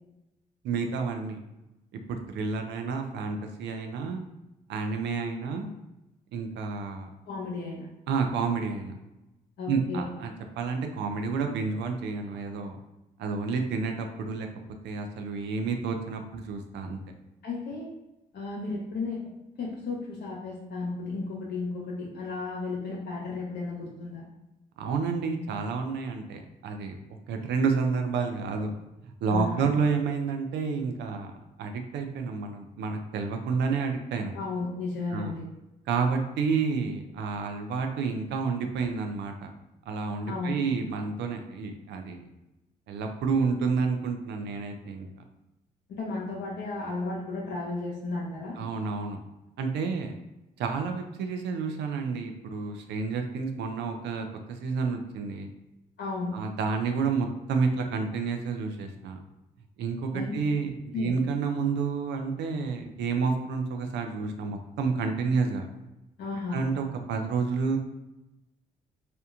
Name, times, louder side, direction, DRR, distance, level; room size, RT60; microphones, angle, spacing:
voice 1, 0.6-1.4 2.1-4.2 4.7-5.7 6.3-7.1 8.1-8.9 9.7-12.8 13.2-14.5 14.8-17.0 24.8-28.7 29.0-31.3 31.6-34.4 35.1-35.3 35.9-39.3 39.9-42.3 42.9-45.1 48.6-49.2 49.6-50.1 50.6-55.5 56.3-59.2 59.8-65.7 66.5-67.8, right 5 dB, 75° right, 5 dB, 0.4 m, -30 dB
voice 2, 7.3-7.9 9.6-10.1 17.4-17.9 18.3-19.2 19.6-24.2 29.3-29.7 34.3-35.4 40.3-40.6 45.9-48.6 56.0-56.3 60.1-60.3 60.9-61.2 66.2-66.6, left 3 dB, 65° left, -3 dB, 0.6 m, -34 dB
2.9 x 2.1 x 2.4 m, 0.96 s
supercardioid pair, 50°, 18 cm